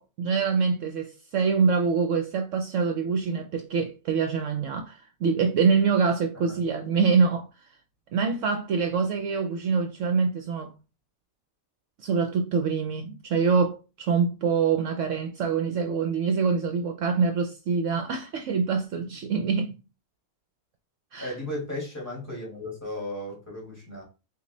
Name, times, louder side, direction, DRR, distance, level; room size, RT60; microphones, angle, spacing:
voice 1, 0.0-7.5 8.1-10.7 12.0-19.8 21.1-21.3, right 5 dB, 65° right, 0.9 m, -25 dB
voice 2, 21.2-24.0, left 1 dB, 10° left, 2.2 m, -35 dB
5.1 x 2.5 x 4.0 m
omnidirectional pair, 1.5 m